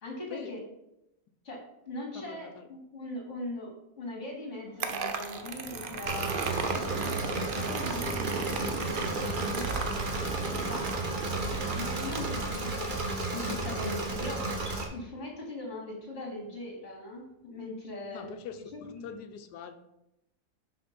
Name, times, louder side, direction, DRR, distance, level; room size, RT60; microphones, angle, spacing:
voice 1, 0.0-0.6 1.4-1.6 1.8-6.4 7.0-9.8 10.5-12.9 13.3-14.5 14.9-18.3 18.7-19.0, left 1 dB, 45° left, -1 dB, 2.4 m, -40 dB
voice 2, 2.1-2.7 12.1-12.2 12.5-12.6 18.1-18.6 19.0-19.8, left 8 dB, 75° left, 9 dB, 1.3 m, -43 dB
sound 1, 4.6-15.0 17.1-17.2 17.4-19.2, equal, 90° right, 3.1 m, -50 dB
sound 2, 4.8-14.0, right 5 dB, 70° right, 0.5 m, -36 dB
Engine / Mechanisms, 6.1-14.8, right 2 dB, 35° right, 1.1 m, -33 dB
5.8 x 5.1 x 5.9 m, 0.87 s
omnidirectional pair, 1.8 m